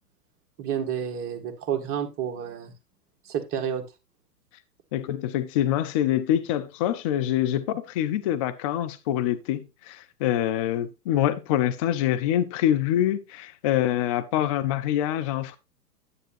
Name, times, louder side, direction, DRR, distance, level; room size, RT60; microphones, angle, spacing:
voice 1, 0.6-2.7 3.2-3.8, right 8 dB, 30° right, 1.6 m, -30 dB
voice 2, 4.9-15.6, left 11 dB, 25° left, 0.4 m, -25 dB
9.8 x 9.4 x 2.7 m
hypercardioid pair, 125°, 46 cm